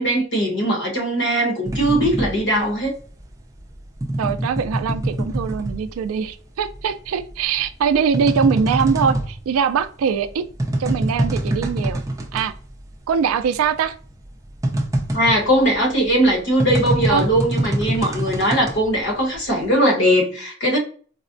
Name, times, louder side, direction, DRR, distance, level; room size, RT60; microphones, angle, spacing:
voice 1, 0.0-2.9 15.1-20.8, right 1 dB, 60° left, 1.1 m, -19 dB
sound 1, 1.7-6.4 6.7-12.6 12.8-12.9 13.2-19.7, right 1 dB, 15° right, 0.5 m, -25 dB
voice 2, 4.2-10.5 10.8-12.0 12.3-12.5 13.1-13.9 17.1-17.3, right 6 dB, 85° right, 0.3 m, -22 dB
4.0 x 2.1 x 2.5 m
head